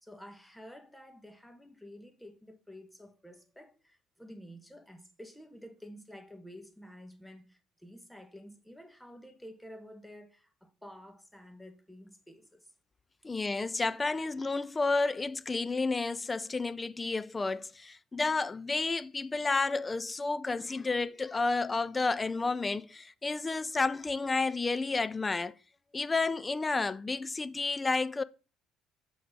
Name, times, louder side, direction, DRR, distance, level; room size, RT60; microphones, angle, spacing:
voice 1, 0.0-12.7, equal, 5° left, 1.2 m, -51 dB
voice 2, 13.2-25.5 25.9-28.2, left 3 dB, 25° left, 0.4 m, -31 dB
5.9 x 3.9 x 6.1 m
supercardioid pair, 75°, 0 cm